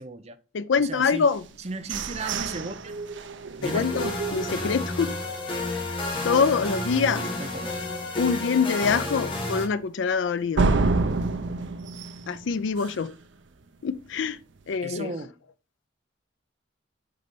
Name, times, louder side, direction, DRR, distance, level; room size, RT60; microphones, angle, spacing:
voice 1, 0.0-0.4 0.8-1.2 1.6-2.9 3.6-3.9 7.4-7.7 14.8-15.3, right 3 dB, 35° right, 0.7 m, -35 dB
voice 2, 0.5-1.4 3.6-5.1 5.7-5.8 6.2-7.3 8.2-10.7 12.3-13.1 13.8-14.4 14.7-15.1, left 5 dB, 75° left, 0.4 m, -25 dB
sound 1, 1.3-5.2 5.6-5.7 6.1-6.5 6.9-7.0 7.5-7.6 10.6-13.2, right 3 dB, 75° right, 0.6 m, -29 dB
sound 2, 3.6-9.7, left 2 dB, 25° left, 1.8 m, -31 dB
6.7 x 4.3 x 5.3 m
head